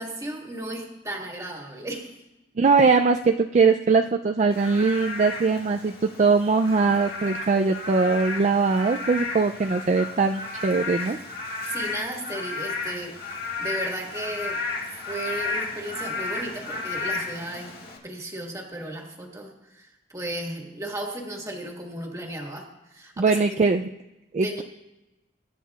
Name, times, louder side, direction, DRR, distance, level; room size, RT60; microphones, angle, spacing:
voice 1, 0.0-2.2 11.7-14.6 15.1-17.7 18.0-23.4 24.4-24.6, right 1 dB, 15° right, 0 dB, 1.7 m, -35 dB
voice 2, 2.6-11.2 23.2-23.9 24.3-24.6, right 4 dB, 40° right, 5 dB, 0.3 m, -21 dB
Frog / Rain, 4.5-18.0, left 3 dB, 55° left, 1.8 m, -33 dB
23.0 x 10.0 x 2.4 m, 0.99 s
head